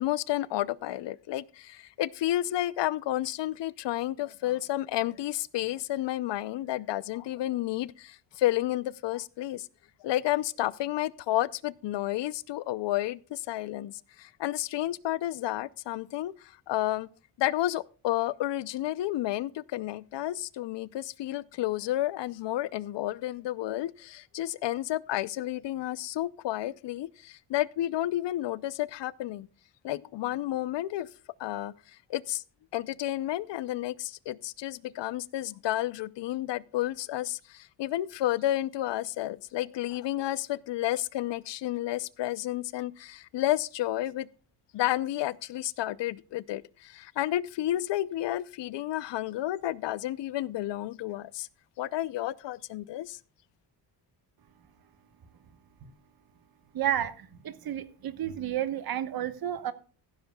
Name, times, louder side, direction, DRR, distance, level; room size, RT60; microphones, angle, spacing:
voice 1, 0.0-9.7 10.0-16.3 16.7-17.1 17.4-29.5 29.8-31.1 31.4-31.7 32.1-32.4 32.7-44.3 44.7-51.5 51.8-53.2, left 14 dB, 80° left, 0.6 m, -31 dB
voice 2, 56.7-59.7, right 11 dB, 55° right, 1.2 m, -31 dB
15.0 x 12.0 x 2.3 m
wide cardioid pair, 175°, 42 cm